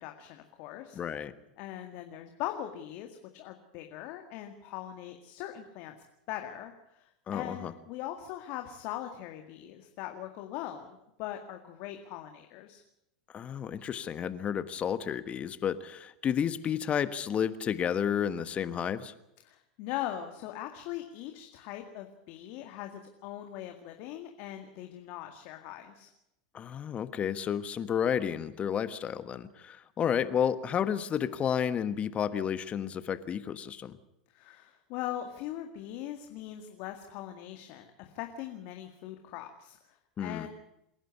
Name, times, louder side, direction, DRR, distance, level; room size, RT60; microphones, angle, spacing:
voice 1, 0.0-1.0 1.6-6.0 6.3-12.8 19.4-26.1 34.3-40.5, left 12 dB, 55° left, 5 dB, 2.0 m, -41 dB
voice 2, 0.9-1.3 7.3-7.7 13.3-19.1 26.5-34.0 40.2-40.5, left 8 dB, 30° left, 13 dB, 1.4 m, -31 dB
27.5 x 11.0 x 9.6 m, 0.84 s
hypercardioid pair, 95°, 4 cm